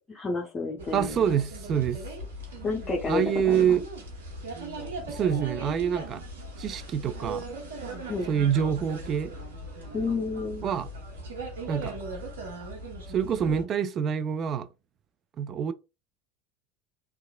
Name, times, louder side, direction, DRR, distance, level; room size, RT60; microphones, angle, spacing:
voice 1, 0.0-1.3 2.6-3.8 8.1-8.3 9.9-10.6, left 3 dB, 25° left, 0.6 m, -30 dB
sound 1, 0.8-13.6, right 2 dB, 75° right, 0.8 m, -39 dB
voice 2, 0.9-2.0 3.1-3.8 5.1-6.2 6.6-7.5 8.3-9.3 10.6-10.9 11.7-12.0 13.1-14.7 15.4-15.7, right 8 dB, 40° right, 0.3 m, -26 dB
2.8 x 2.3 x 2.2 m
figure-of-eight pair, 75°, 0 cm